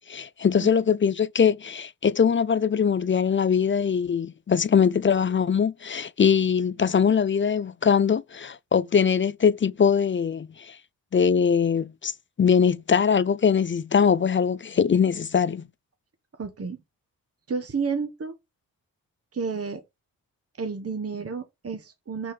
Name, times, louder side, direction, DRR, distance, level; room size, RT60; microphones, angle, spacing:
voice 1, 0.1-10.8 11.1-12.1 12.4-15.6, left 7 dB, 30° left, 0.5 m, -22 dB
voice 2, 16.4-16.8 17.5-18.3 19.3-19.8 20.6-22.3, right 5 dB, 40° right, 1.3 m, -31 dB
6.1 x 4.2 x 5.2 m
supercardioid pair, 50°, 37 cm